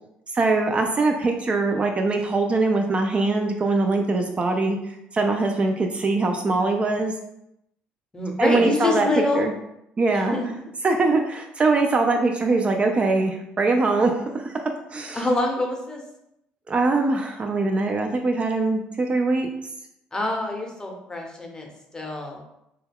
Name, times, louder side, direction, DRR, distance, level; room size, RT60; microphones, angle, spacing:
voice 1, 0.3-7.1 8.4-9.1 9.3-9.5 10.0-10.4 10.8-14.5 14.9-15.3 16.7-19.5, right 3 dB, 30° right, 3 dB, 0.3 m, -22 dB
voice 2, 8.1-9.5 10.1-10.4 15.1-16.0 20.1-22.4, left 2 dB, 20° left, 1 dB, 0.7 m, -26 dB
2.2 x 2.2 x 3.4 m, 0.81 s
supercardioid pair, 75°, 4 cm